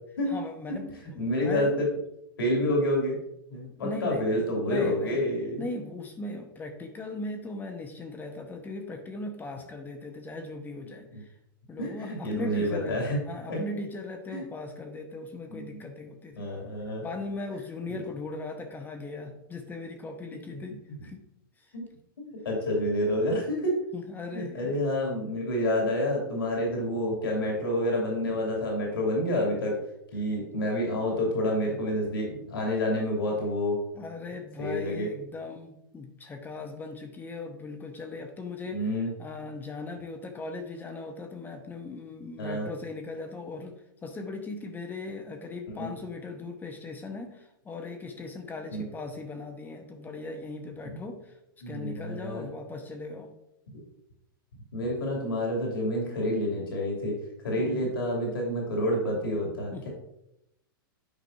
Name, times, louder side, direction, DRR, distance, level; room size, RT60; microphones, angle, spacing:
voice 1, 0.3-1.7 2.6-2.7 3.8-5.2 5.6-11.3 11.7-16.5 17.0-21.2 23.9-24.7 33.9-38.9 39.2-51.3 51.7-53.3 57.6-57.9 59.7-59.9, left 3 dB, 15° left, 4 dB, 0.9 m, -39 dB
voice 2, 1.2-1.9 2.4-3.2 3.5-5.6 11.1-11.2 11.8-13.2 13.5-13.6 14.3-14.4 15.5-15.8 16.4-17.0 21.7-21.8 22.2-23.7 24.3-29.7 30.1-33.8 34.6-35.1 38.7-39.1 42.4-42.7 45.7-45.9 48.7-48.9 51.6-52.5 54.7-57.2 57.4-59.9, left 1 dB, 85° left, -2 dB, 2.7 m, -28 dB
9.3 x 5.3 x 2.7 m, 0.81 s
hypercardioid pair, 115°, 12 cm